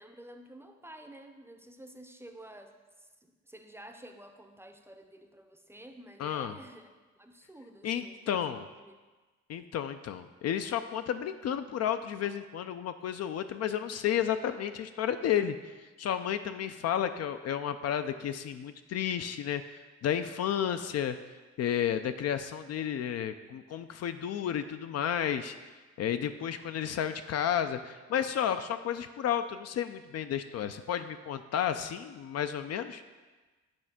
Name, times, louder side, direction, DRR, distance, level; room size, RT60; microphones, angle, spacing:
voice 1, 0.0-6.9 7.2-8.3 8.7-9.0, right 1 dB, 10° right, 5 dB, 0.6 m, -51 dB
voice 2, 6.2-6.5 7.8-8.7 9.5-21.2 21.6-25.6 26.0-33.0, left 9 dB, 55° left, 9 dB, 0.4 m, -32 dB
8.8 x 3.3 x 5.9 m, 1.3 s
cardioid pair, 90°, 30 cm